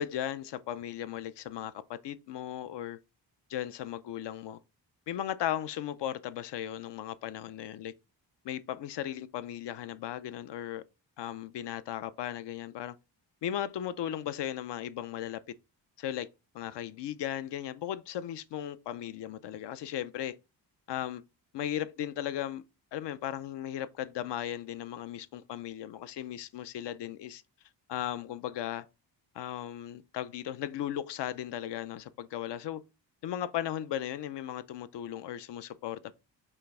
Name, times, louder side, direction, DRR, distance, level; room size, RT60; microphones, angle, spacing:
voice 1, 0.0-3.0 3.5-4.6 5.1-7.9 8.4-10.8 11.2-13.0 13.4-15.5 16.0-16.3 16.5-20.4 20.9-21.2 21.5-22.6 22.9-27.4 27.9-28.8 29.3-32.8 33.2-36.2, left 11 dB, 70° left, 0.5 m, -36 dB
5.5 x 2.0 x 4.6 m
wide cardioid pair, 140°, 44 cm